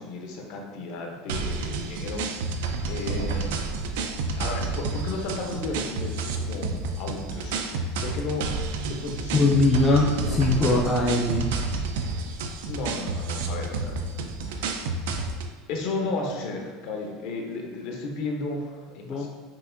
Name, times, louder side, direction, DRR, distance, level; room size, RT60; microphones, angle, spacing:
voice 1, 0.0-2.5 2.9-3.5 4.3-8.5 8.8-9.5 12.7-14.0 15.7-19.3, left 3 dB, 60° left, 1 dB, 0.7 m, -33 dB
sound 1, 1.3-15.5, right 3 dB, 85° right, 0.4 m, -30 dB
voice 2, 9.3-11.5 19.0-19.3, left 2 dB, 20° left, -2 dB, 0.4 m, -21 dB
5.6 x 2.5 x 2.6 m, 1.5 s
supercardioid pair, 160°, 0 cm